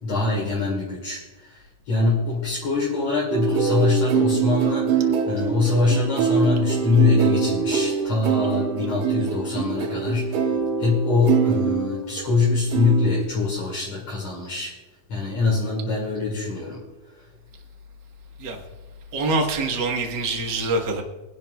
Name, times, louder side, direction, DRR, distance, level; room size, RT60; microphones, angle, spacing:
voice 1, 0.0-10.4 10.8-14.8 15.1-16.8, left 4 dB, 55° left, -5 dB, 3.4 m, -23 dB
sound 1, 3.3-12.4 12.7-13.2, right 7 dB, 75° right, 2.4 m, -24 dB
voice 2, 19.1-21.0, right 2 dB, 50° right, 2 dB, 1.3 m, -24 dB
25.0 x 11.0 x 2.4 m, 1.2 s
omnidirectional pair, 4.0 m